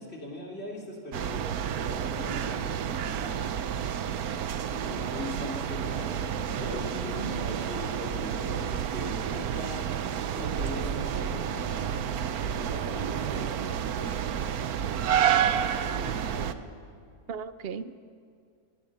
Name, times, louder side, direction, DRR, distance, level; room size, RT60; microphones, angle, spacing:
voice 1, 0.0-3.5 4.7-6.2 6.5-9.9 10.3-12.1 12.4-14.6 15.2-16.5, left 1 dB, 45° left, -2 dB, 3.4 m, -40 dB
sound 1, 1.1-16.5, right 9 dB, 85° right, 1.3 m, -30 dB
sound 2, 5.6-13.1, left 1 dB, 85° left, 6.3 m, -49 dB
voice 2, 7.1-7.6 17.3-18.0, right 6 dB, 50° right, 13 dB, 0.8 m, -37 dB
24.0 x 20.5 x 5.5 m, 2.3 s
omnidirectional pair, 1.6 m